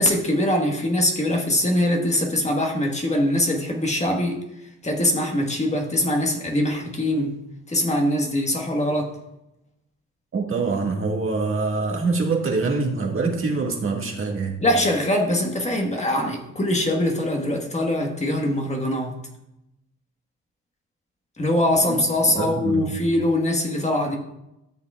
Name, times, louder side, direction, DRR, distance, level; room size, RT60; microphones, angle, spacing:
voice 1, 0.0-4.4 4.8-7.4 7.7-9.1 14.6-19.2 21.4-24.2, left 1 dB, 25° left, 1 dB, 1.5 m, -22 dB
voice 2, 10.3-14.6 22.2-22.9, right 3 dB, 45° right, 0 dB, 1.9 m, -24 dB
13.0 x 6.7 x 2.4 m, 0.86 s
cardioid pair, 90°, 30 cm